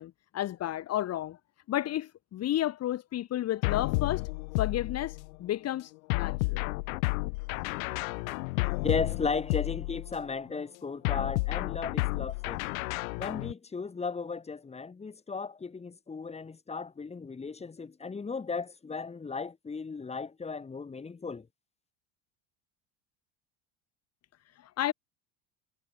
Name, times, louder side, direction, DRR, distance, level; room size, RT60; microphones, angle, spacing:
voice 1, 0.0-1.4 1.7-4.3 4.6-6.7 24.5-24.9, left 13 dB, 40° left, 3.2 m, -32 dB
sound 1, 3.6-5.4 6.1-10.3 11.0-13.5, left 25 dB, 85° left, 6.4 m, -31 dB
voice 2, 8.8-12.6 13.2-21.5, left 4 dB, 15° left, 7.7 m, -35 dB
cardioid pair, 150°, 40 cm